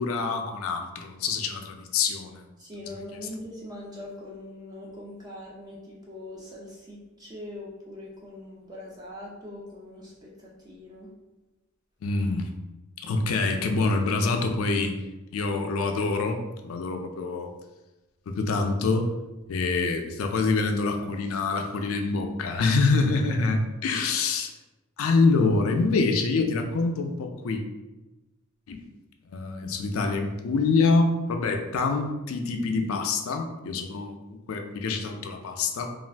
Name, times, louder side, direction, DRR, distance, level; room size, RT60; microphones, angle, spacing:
voice 1, 0.0-2.4 2.9-3.0 12.0-12.5 13.0-15.0 15.3-17.5 18.3-19.1 19.5-24.5 25.0-27.6 28.7-28.8 29.3-35.9, left 3 dB, 90° left, 5 dB, 0.4 m, -26 dB
voice 2, 2.6-10.1 10.6-11.1, left 1 dB, 20° right, -4 dB, 0.4 m, -42 dB
2.5 x 2.3 x 3.3 m, 1.1 s
head